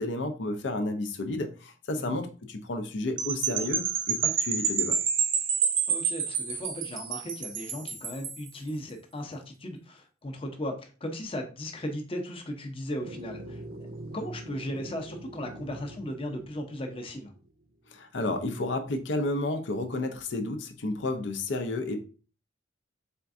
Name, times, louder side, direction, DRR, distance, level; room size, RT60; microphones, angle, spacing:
voice 1, 0.0-5.0 17.9-22.2, left 2 dB, 70° left, 6 dB, 0.6 m, -31 dB
sound 1, 3.2-8.5, right 7 dB, 90° right, 0.7 m, -28 dB
voice 2, 5.9-13.6 14.1-17.3, equal, 30° left, 3 dB, 0.7 m, -36 dB
sound 2, 13.0-17.6, right 1 dB, 50° right, 0.5 m, -44 dB
4.4 x 3.5 x 2.5 m, 0.36 s
head